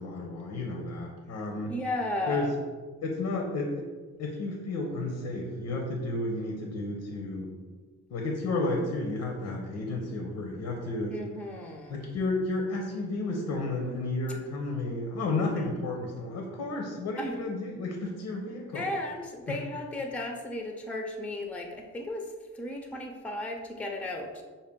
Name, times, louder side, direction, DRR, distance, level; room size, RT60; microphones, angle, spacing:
voice 1, 0.0-1.7 2.3-2.5 3.0-3.9 4.2-7.5 8.1-11.2 11.9-18.9 19.5-19.6, left 2 dB, 75° left, 1 dB, 0.7 m, -32 dB
voice 2, 1.7-2.5 11.1-12.0 15.5-15.7 17.2-17.4 18.7-24.4, left 1 dB, 5° left, 3 dB, 0.4 m, -35 dB
5.4 x 2.2 x 3.5 m, 1.4 s
cardioid pair, 90°, 30 cm